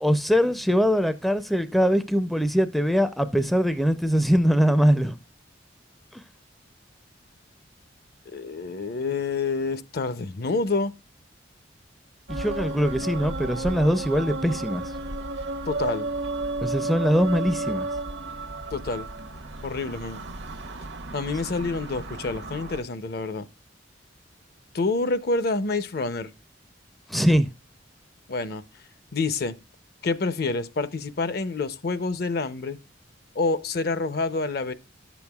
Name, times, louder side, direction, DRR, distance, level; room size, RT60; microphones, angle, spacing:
voice 1, 0.0-5.2 6.1-6.2 12.3-14.9 16.6-17.9 27.1-27.5, equal, ahead, 0.4 m, -22 dB
voice 2, 8.3-10.9 15.7-16.1 18.7-19.1 19.6-20.2 21.1-23.5 24.7-26.3 28.3-28.6 29.1-29.6 30.0-32.8 33.3-34.7, left 3 dB, 55° left, 0.6 m, -27 dB
sound 1, 12.3-22.8, right 2 dB, 70° right, 0.8 m, -33 dB
11.0 x 7.1 x 2.3 m
head